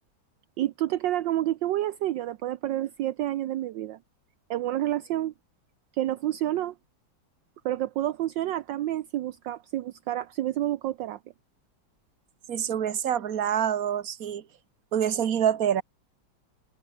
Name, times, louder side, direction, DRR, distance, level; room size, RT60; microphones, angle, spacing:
voice 1, 0.6-4.0 4.5-5.3 5.9-6.7 7.6-11.2, right 13 dB, 70° right, 1.4 m, -29 dB
voice 2, 12.5-14.4 14.9-15.8, right 9 dB, 50° right, 1.6 m, -26 dB
omnidirectional pair, 2.1 m